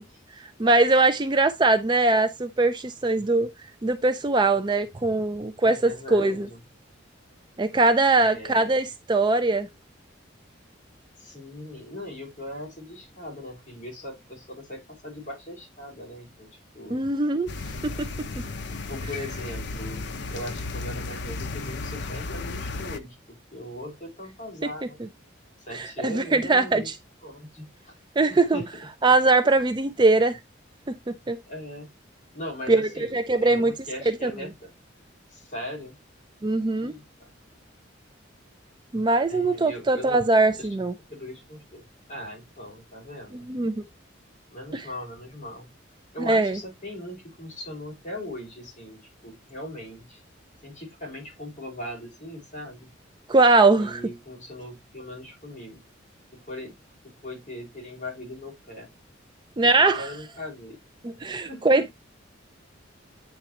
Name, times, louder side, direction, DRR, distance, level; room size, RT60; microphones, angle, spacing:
voice 1, 0.4-3.5 3.8-6.5 7.6-9.7 16.9-17.5 17.8-18.3 24.6-24.7 25.7-26.9 28.2-28.6 29.0-30.4 31.3-31.4 32.7-32.8 33.1-33.7 34.2-34.3 36.4-36.9 38.9-40.9 43.5-43.8 44.7-44.8 46.2-46.6 53.3-54.0 59.6-60.1 61.0-61.9, right 3 dB, 25° right, 0.4 m, -21 dB
voice 2, 5.6-6.6 8.1-8.7 11.2-17.0 18.9-20.0 20.3-25.0 25.6-26.9 27.2-27.9 28.3-28.7 31.5-31.9 32.3-34.7 35.3-36.0 36.7-37.3 39.3-40.2 40.5-40.7 41.1-41.8 42.1-43.5 44.5-45.7 46.1-50.2 50.6-52.9 53.8-55.8 56.3-56.7 57.0-58.9 59.6-60.8 61.3-61.9, left 1 dB, 40° left, 4.8 m, -39 dB
sound 1, 17.5-23.0, left 3 dB, 60° left, 0.7 m, -34 dB
9.1 x 3.9 x 2.9 m
head